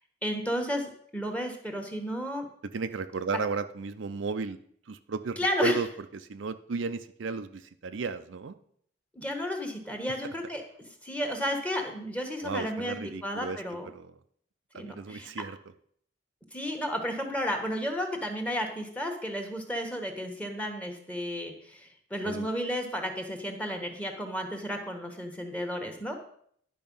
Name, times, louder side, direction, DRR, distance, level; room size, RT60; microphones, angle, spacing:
voice 1, 0.2-2.5 5.4-5.8 9.1-13.9 14.7-15.3 16.5-26.2, equal, 5° left, 4 dB, 1.3 m, -33 dB
voice 2, 2.7-4.6 4.9-5.9 6.1-8.5 12.4-14.1 14.7-15.6 22.2-22.5, right 4 dB, 70° right, 9 dB, 0.5 m, -34 dB
10.5 x 5.5 x 5.4 m, 0.65 s
head